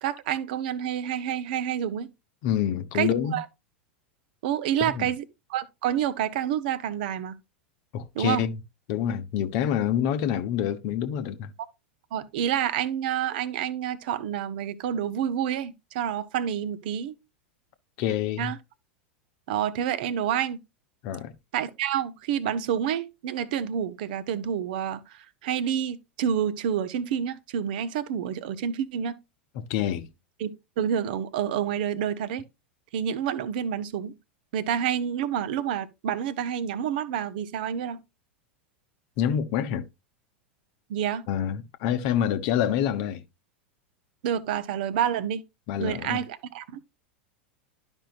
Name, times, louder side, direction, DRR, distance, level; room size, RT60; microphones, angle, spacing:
voice 1, 0.0-2.1 2.9-3.5 4.4-5.2 5.5-7.3 8.1-8.4 12.1-17.1 18.4-18.6 19.5-20.6 21.5-29.1 30.4-30.5 30.8-32.4 32.9-34.2 34.5-38.0 40.9-41.2 44.2-45.4 45.8-46.8, right 9 dB, 55° right, 0.8 m, -28 dB
voice 2, 2.4-3.4 4.8-5.1 7.9-8.6 8.9-11.5 18.0-18.5 21.0-21.3 29.7-30.1 39.2-39.8 41.3-43.2 45.7-46.2, left 9 dB, 45° left, 0.8 m, -27 dB
11.5 x 5.3 x 2.5 m
figure-of-eight pair, 85°, 6 cm